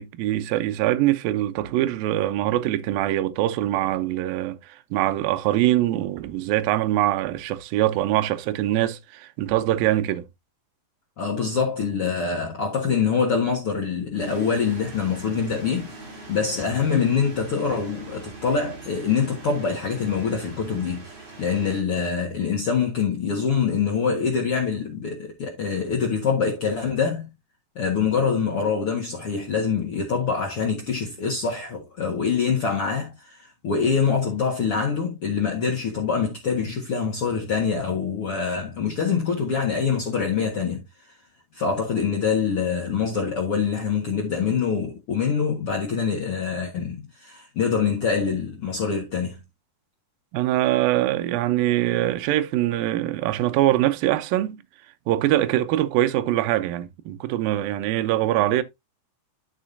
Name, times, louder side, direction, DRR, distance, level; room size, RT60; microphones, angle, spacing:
voice 1, 0.0-10.3 50.3-54.6 55.1-58.6, right 14 dB, 80° right, 2.2 m, -23 dB
voice 2, 11.2-27.3 27.7-40.8 41.5-49.4, left 6 dB, 70° left, 1.3 m, -25 dB
sound 1, 14.2-21.8, right 2 dB, 40° right, 3.5 m, -42 dB
11.5 x 5.5 x 2.6 m
omnidirectional pair, 5.0 m